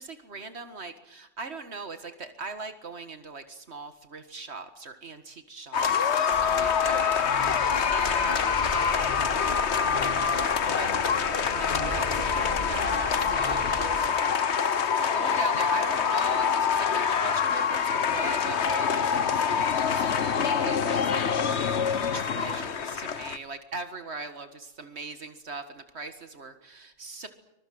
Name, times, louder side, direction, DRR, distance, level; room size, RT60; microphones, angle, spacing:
voice 1, 0.0-10.3 10.7-14.6 15.1-21.2 22.1-27.3, right 4 dB, 75° right, 9 dB, 2.0 m, -40 dB
sound 1, 5.7-23.4, left 7 dB, 85° left, 1.4 m, -25 dB
barrel organ, 6.3-14.1, left 1 dB, 55° left, 4.1 m, -38 dB
25.0 x 22.5 x 7.8 m, 0.87 s
omnidirectional pair, 1.1 m